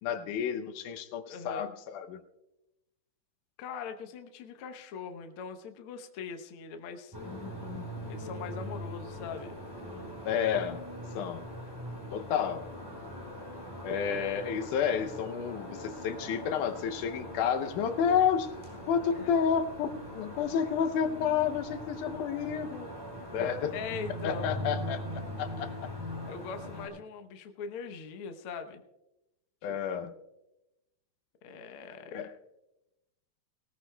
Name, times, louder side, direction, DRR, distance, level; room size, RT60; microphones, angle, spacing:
voice 1, 0.0-2.2 7.3-7.9 10.3-10.8 11.1-11.4 12.1-12.7 13.8-18.5 18.9-22.9 23.3-23.7 24.2-25.0 25.4-25.7 29.6-30.1 32.1-32.3, left 7 dB, 80° left, 8 dB, 2.2 m, -30 dB
voice 2, 1.2-1.7 3.6-7.2 8.1-9.6 19.2-19.3 23.7-24.5 26.3-28.8 29.6-29.8 31.4-32.3, left 6 dB, 65° left, 6 dB, 1.4 m, -41 dB
sound 1, 7.1-26.9, equal, 5° right, 4.5 m, -41 dB
19.5 x 18.5 x 2.2 m, 0.94 s
omnidirectional pair, 3.6 m